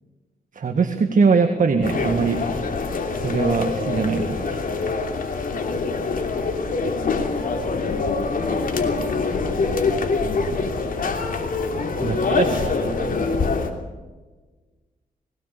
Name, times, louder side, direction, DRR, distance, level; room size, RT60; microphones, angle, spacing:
voice 1, 0.5-2.4 3.2-4.6 12.0-12.7 13.0-13.1, right 5 dB, 60° right, 6 dB, 1.8 m, -21 dB
sound 1, 1.8-13.7, left 4 dB, 65° left, 3.0 m, -25 dB
voice 2, 6.8-11.2 12.0-13.5, left 5 dB, 85° left, 4 dB, 3.4 m, -34 dB
21.0 x 18.0 x 6.9 m, 1.3 s
cardioid pair, 85°, 15 cm